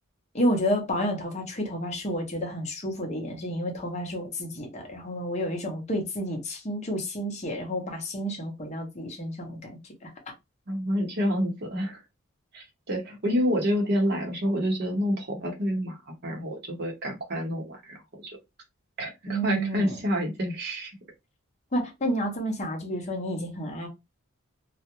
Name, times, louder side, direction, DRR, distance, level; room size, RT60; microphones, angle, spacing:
voice 1, 0.3-9.7 10.0-10.1 19.3-20.0 21.7-23.9, equal, 30° left, 0.6 m, -30 dB
voice 2, 10.7-12.0 12.5-18.0 18.2-18.4 19.0-20.9, equal, 50° right, 0.8 m, -28 dB
2.4 x 2.1 x 2.9 m
head